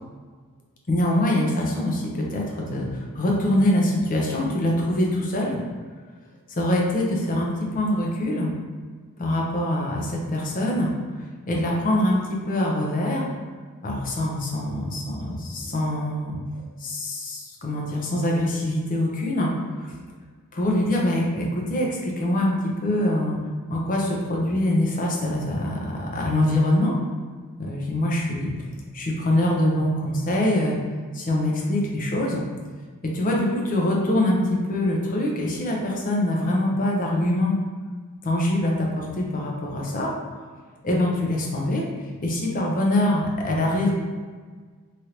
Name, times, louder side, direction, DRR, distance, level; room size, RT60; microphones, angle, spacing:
voice 1, 0.9-5.6 6.5-8.5 9.2-10.9 11.5-13.3 13.8-16.4 16.8-19.5 19.8-19.9 20.5-23.4 23.7-26.9 27.6-28.5 28.9-30.8 31.1-32.4 33.0-37.6 38.2-40.1 40.4-40.5 40.8-41.8 42.2-43.9, left 1 dB, 40° left, -1 dB, 0.6 m, -24 dB
3.2 x 2.5 x 2.9 m, 1.5 s
head